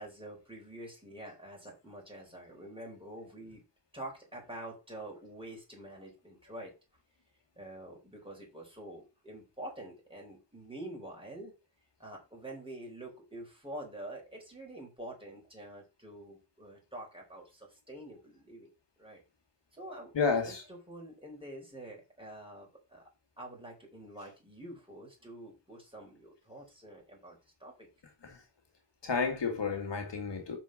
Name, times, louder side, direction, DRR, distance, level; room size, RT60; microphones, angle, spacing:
voice 1, 0.0-3.6 3.9-6.7 7.6-11.5 12.0-18.7 19.0-19.2 19.7-23.0 23.4-27.9, right 1 dB, 10° right, 4.3 m, -47 dB
voice 2, 20.1-20.6 28.2-28.4 29.0-30.6, left 5 dB, 70° left, 1.9 m, -31 dB
5.9 x 4.5 x 6.4 m
wide cardioid pair, 80°, 43 cm